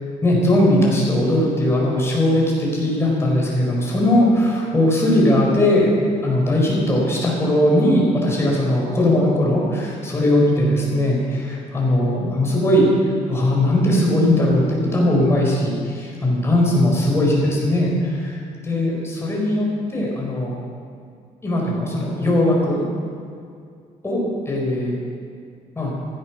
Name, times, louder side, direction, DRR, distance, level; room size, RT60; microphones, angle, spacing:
voice 1, 0.2-5.9 6.2-12.9 13.3-18.3 18.6-20.5 21.4-22.8 24.0-25.0 25.8-25.9, left 1 dB, 20° left, -3 dB, 4.4 m, -19 dB
15.0 x 12.0 x 6.0 m, 2.3 s
cardioid pair, 145°, 14 cm